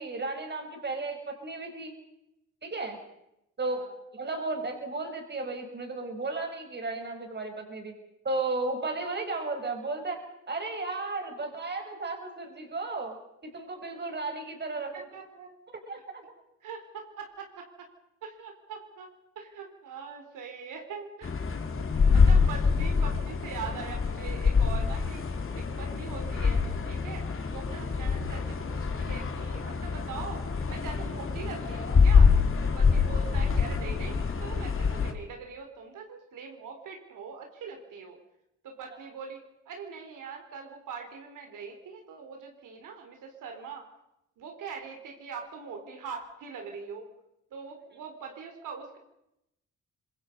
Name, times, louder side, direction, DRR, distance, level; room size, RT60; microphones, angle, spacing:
voice 1, 0.0-1.9 2.6-3.0 3.6-3.8 4.1-7.9 8.2-10.2 10.5-13.2 13.4-15.1 15.9-16.2, right 3 dB, 35° right, 4 dB, 5.4 m, -34 dB
voice 2, 14.9-15.5 16.6-17.9 18.2-19.1 19.4-21.5 21.9-25.2 25.5-32.3 32.6-38.2 38.6-39.4 39.7-43.9 44.4-47.1 47.5-49.0, right 5 dB, 85° right, 3 dB, 4.2 m, -42 dB
sound 1, 21.2-35.1, left 5 dB, 40° left, 2.9 m, -25 dB
26.0 x 21.5 x 5.4 m, 0.84 s
cardioid pair, 105°, 31 cm